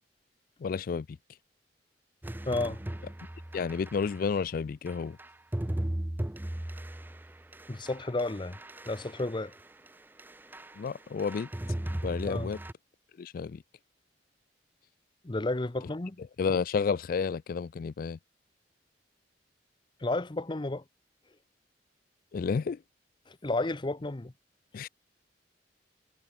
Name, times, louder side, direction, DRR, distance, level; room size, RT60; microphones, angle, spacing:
voice 1, 0.6-1.1 3.5-5.2 10.8-11.5 12.0-12.6 13.2-13.6 16.4-18.2 22.3-22.8 24.7-24.9, left 5 dB, 50° left, 0.3 m, -31 dB
sound 1, 2.2-4.3 4.9-9.9 10.2-10.9 11.2-12.7, right 1 dB, 10° right, 0.5 m, -37 dB
voice 2, 2.4-2.8 7.7-8.6 8.9-9.5 12.3-12.5 15.2-16.2 20.0-20.8 23.3-24.3, left 2 dB, 25° left, 0.7 m, -32 dB
head